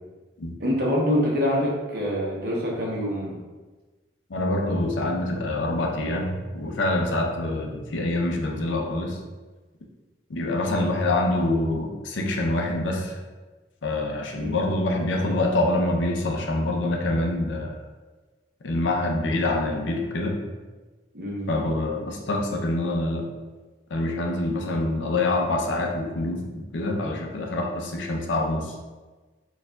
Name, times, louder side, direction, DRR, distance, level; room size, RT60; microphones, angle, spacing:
voice 1, 0.6-3.4 14.4-14.6 21.1-21.6, equal, 55° right, -3 dB, 0.9 m, -25 dB
voice 2, 4.3-9.2 10.3-13.2 13.8-17.8 18.6-20.4 21.5-23.3 23.9-28.8, left 2 dB, 85° left, 2 dB, 0.6 m, -26 dB
6.4 x 2.4 x 2.3 m, 1.3 s
head